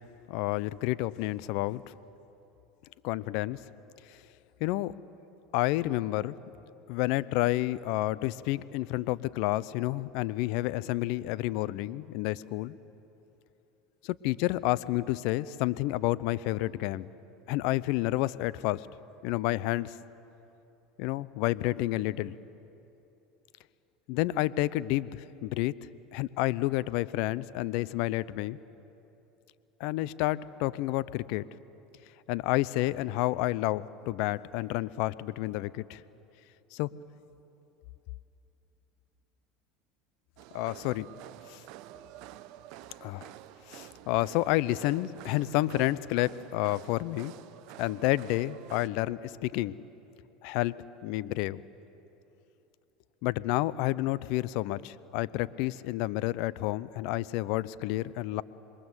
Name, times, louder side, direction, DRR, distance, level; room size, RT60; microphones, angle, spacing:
voice 1, 0.3-1.9 3.0-3.6 4.1-4.2 4.6-4.9 5.5-6.3 6.9-12.8 14.0-17.1 17.5-18.9 19.2-20.0 21.0-22.3 24.1-25.7 26.1-28.6 29.8-31.4 32.3-36.0 36.7-36.9 40.5-41.1 41.5-41.6 43.0-43.3 43.7-47.3 47.8-49.8 50.4-50.7 51.0-51.6 53.2-58.4, left 17 dB, 65° left, 18 dB, 0.6 m, -30 dB
sound 1, 40.4-48.9, right 14 dB, 65° right, 0.7 m, -49 dB
26.5 x 21.5 x 8.1 m, 2.9 s
hypercardioid pair, 85°, 0 cm